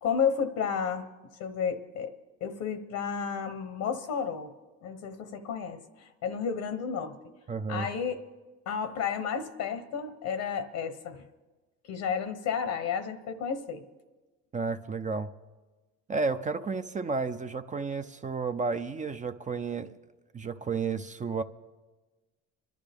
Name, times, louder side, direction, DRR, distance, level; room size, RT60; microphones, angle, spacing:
voice 1, 0.0-1.1 1.4-2.1 2.4-4.5 4.8-7.3 7.7-8.2 8.7-11.3 11.9-13.8, left 7 dB, 70° left, 9 dB, 1.0 m, -32 dB
voice 2, 7.5-7.9 14.5-15.3 16.1-19.9 20.3-21.4, right 4 dB, 25° right, 9 dB, 0.5 m, -32 dB
25.0 x 12.0 x 3.5 m, 1.2 s
cardioid pair, 100°, 31 cm